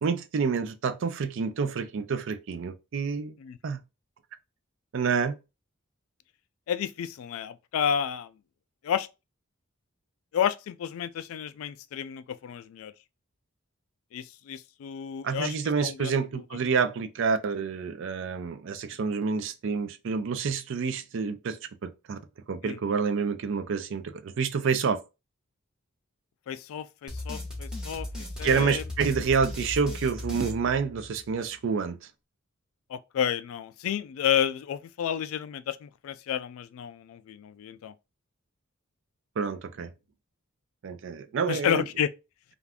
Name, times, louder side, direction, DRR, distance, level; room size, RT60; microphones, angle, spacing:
voice 1, 0.0-3.4 3.6-3.8 4.9-5.4 15.2-22.2 22.5-25.0 28.4-32.0 39.4-39.9 40.8-41.8, right 5 dB, 65° right, 0.4 m, -28 dB
voice 2, 6.7-8.3 8.8-9.1 10.3-12.9 14.1-15.5 15.8-16.1 22.6-22.8 26.5-28.8 32.9-37.9 41.5-42.1, left 9 dB, 75° left, 0.3 m, -31 dB
sound 1, 27.1-31.4, left 2 dB, 5° right, 0.7 m, -37 dB
2.4 x 2.3 x 3.4 m
head